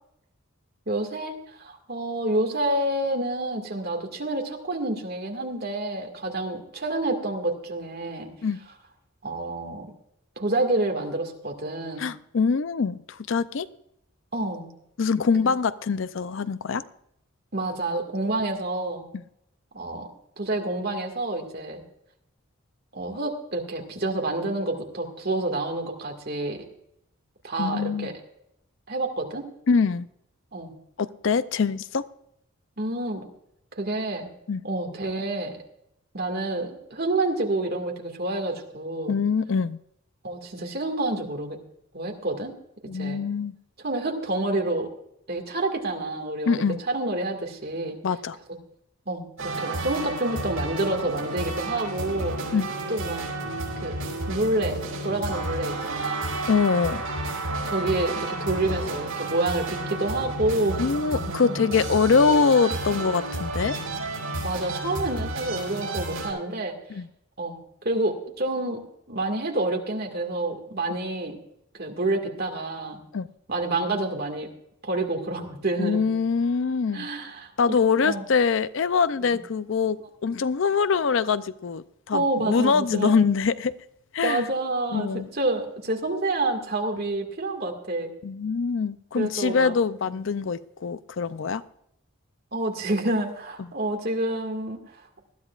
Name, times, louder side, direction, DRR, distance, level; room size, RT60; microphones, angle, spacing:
voice 1, 0.9-8.3 9.2-9.9 10.4-12.1 14.3-14.7 15.4-15.5 17.5-19.0 19.7-20.1 20.4-21.8 22.9-26.6 27.4-28.2 28.9-29.5 30.5-30.7 32.8-33.3 33.8-34.3 34.6-35.6 36.1-39.1 40.2-41.6 41.9-42.5 42.9-43.2 43.8-44.9 45.3-48.0 49.1-52.4 52.9-53.2 53.8-54.0 54.3-56.3 57.6-60.9 61.1-61.6 64.4-66.8 67.4-67.6 67.8-68.8 69.1-71.4 71.7-73.0 73.5-74.5 74.8-76.1 76.9-77.5 78.0-78.2 82.1-83.1 84.2-88.1 89.2-89.7 92.5-94.8, right 2 dB, 45° right, 1.9 m, -28 dB
voice 2, 12.0-13.7 15.0-16.8 19.1-19.2 27.6-28.1 29.7-30.1 31.0-32.1 34.5-34.6 39.1-39.8 42.9-43.5 46.5-46.8 48.0-48.4 52.5-52.7 56.5-57.0 60.8-63.8 66.9-67.1 70.9-71.0 73.1-73.3 75.8-77.1 77.6-83.7 84.1-84.5 84.9-85.3 88.2-91.6 93.6-93.7, left 5 dB, 60° left, 0.5 m, -24 dB
sound 1, 49.4-66.3, right 2 dB, 75° right, 5.8 m, -31 dB
20.0 x 13.0 x 2.4 m
head